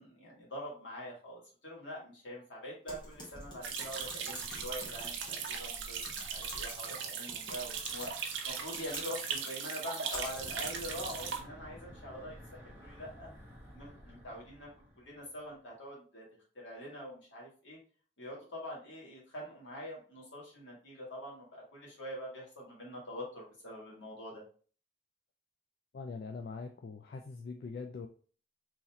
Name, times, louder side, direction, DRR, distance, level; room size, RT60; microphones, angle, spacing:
voice 1, 0.0-8.1 8.4-13.3 13.7-14.7 15.0-16.3 16.5-17.8 18.2-24.4, equal, 80° left, -4 dB, 1.8 m, -44 dB
Typing, 2.9-11.0, left 1 dB, 25° left, 1.1 m, -48 dB
sound 1, 3.6-11.4, right 6 dB, 80° right, 0.7 m, -39 dB
Breathing / Wind, 7.4-9.3 10.2-15.6, equal, 10° right, 1.0 m, -53 dB
voice 2, 25.9-28.1, left 4 dB, 55° left, 5 dB, 0.3 m, -42 dB
3.9 x 3.0 x 2.8 m, 0.41 s
head